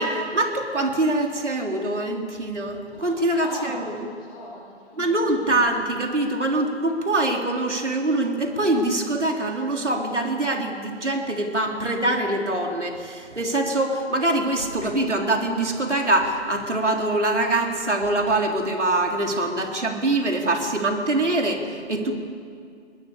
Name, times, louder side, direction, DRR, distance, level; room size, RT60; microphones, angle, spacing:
voice 1, 0.0-3.9 5.0-22.1, right 2 dB, 80° right, 2 dB, 3.7 m, -24 dB
voice 2, 2.9-5.3, left 2 dB, 15° left, -3 dB, 5.5 m, -39 dB
23.0 x 20.5 x 8.7 m, 2.2 s
figure-of-eight pair, 150°, 35 cm